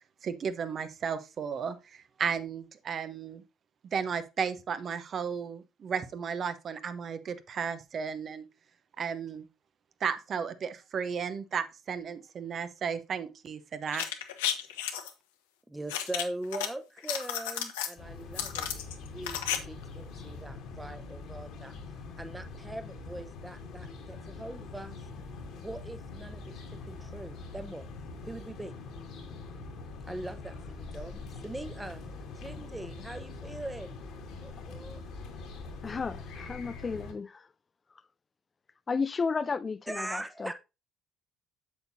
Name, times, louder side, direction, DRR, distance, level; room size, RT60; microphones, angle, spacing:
voice 1, 0.2-3.4 3.9-8.4 9.0-9.4 10.0-14.0, right 6 dB, 50° right, 0.9 m, -34 dB
sound 1, 13.9-15.1 15.9-16.7 17.0-17.9 18.3-19.6 19.8-19.9, left 10 dB, 80° left, 0.9 m, -33 dB
voice 2, 15.7-21.7 22.2-25.0 25.6-27.9 28.2-28.7 30.1-34.0 34.4-35.0 39.9-40.5, right 1 dB, 10° right, 1.0 m, -41 dB
sound 2, 18.0-37.1, left 3 dB, 60° left, 2.2 m, -44 dB
voice 3, 35.8-37.5 38.9-40.5, left 5 dB, 35° left, 0.4 m, -33 dB
7.9 x 7.1 x 2.7 m
hypercardioid pair, 55°, 0 cm